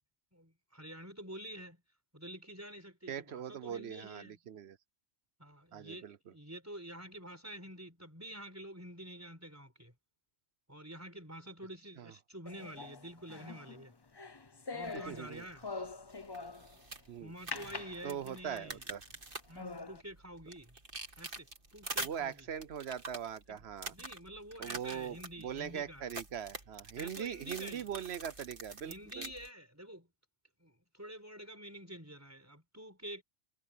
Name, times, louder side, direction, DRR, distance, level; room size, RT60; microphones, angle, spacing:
voice 1, 0.3-1.8 2.1-4.4 5.4-9.9 10.7-13.9 14.7-15.8 17.2-18.9 19.5-20.7 21.2-22.5 23.5-23.6 23.9-26.1 27.0-27.9 28.8-30.1 30.6-33.2, right 1 dB, 15° right, 4.7 m, -48 dB
voice 2, 3.1-4.8 5.7-6.2 12.0-12.1 14.9-15.4 17.1-17.3 18.0-19.0 22.0-23.9 24.6-29.3, right 8 dB, 70° right, 1.0 m, -41 dB
sound 1, 12.5-16.8 17.5-18.6 19.1-19.2 19.6-20.0, left 3 dB, 25° left, 0.7 m, -44 dB
sound 2, 14.8-29.5, right 2 dB, 50° right, 2.7 m, -47 dB
omnidirectional pair, 1.2 m